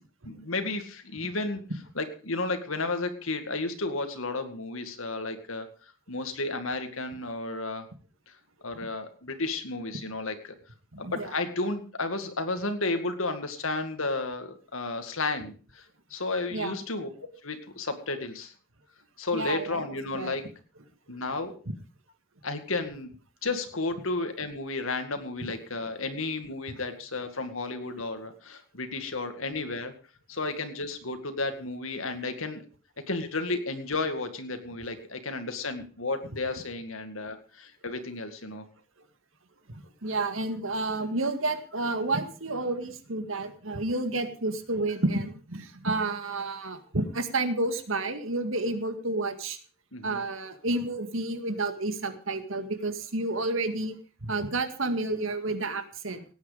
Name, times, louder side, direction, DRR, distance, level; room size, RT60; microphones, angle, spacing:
voice 1, 0.2-1.6 2.0-5.7 6.1-7.9 8.3-8.4 8.6-10.5 11.0-15.8 16.1-17.1 17.4-18.5 19.2-20.4 21.1-21.5 22.4-23.1 23.4-29.9 30.3-32.6 33.1-38.6 49.9-50.2, left 3 dB, 80° left, 7 dB, 2.1 m, -32 dB
voice 2, 10.9-11.4 16.5-16.8 19.3-19.8 20.1-20.3 39.7-49.6 50.0-54.0 54.2-56.2, right 2 dB, 75° right, 9 dB, 1.9 m, -30 dB
17.5 x 9.5 x 5.1 m, 0.37 s
head